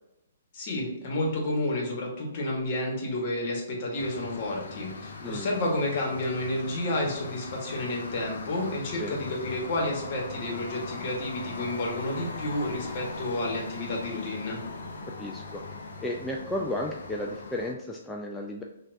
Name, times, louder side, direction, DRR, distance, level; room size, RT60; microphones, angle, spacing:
voice 1, 0.5-14.6, left 1 dB, 45° left, -1 dB, 1.2 m, -30 dB
sound 1, 3.9-17.7, left 3 dB, 65° left, 0.6 m, -40 dB
voice 2, 15.2-15.6 16.0-18.6, left 1 dB, 10° left, 0 dB, 0.3 m, -33 dB
5.6 x 2.4 x 2.6 m, 0.89 s
figure-of-eight pair, 125°, 0 cm